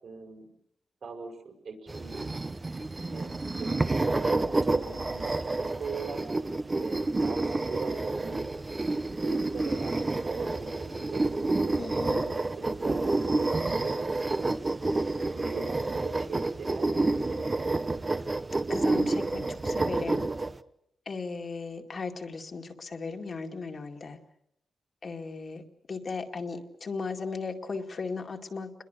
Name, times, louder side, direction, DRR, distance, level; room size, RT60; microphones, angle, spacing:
voice 1, 0.0-0.5 1.0-2.3 2.7-3.3 3.6-4.4 4.7-6.2 6.8-8.4 9.1-11.2 11.9-14.5 15.3-17.7, right 4 dB, 60° right, 4 dB, 6.0 m, -41 dB
sound 1, 1.9-20.5, right 2 dB, 20° right, 0.9 m, -29 dB
voice 2, 11.8-12.2 18.7-20.3 21.1-24.2 25.0-25.6 25.9-28.7, left 4 dB, 40° left, 3 dB, 2.2 m, -36 dB
29.0 x 22.0 x 6.7 m, 0.77 s
wide cardioid pair, 140°, 0 cm